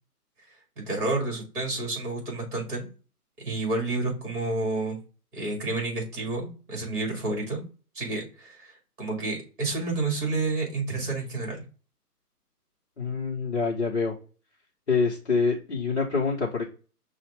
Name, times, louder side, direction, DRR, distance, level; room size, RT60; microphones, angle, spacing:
voice 1, 0.8-2.9 3.4-5.0 5.3-7.6 7.9-11.6, right 3 dB, 35° right, 0 dB, 2.2 m, -30 dB
voice 2, 13.0-14.1 14.9-16.6, left 4 dB, 45° left, -3 dB, 1.0 m, -26 dB
5.8 x 2.4 x 3.4 m, 0.35 s
figure-of-eight pair, 160°, 47 cm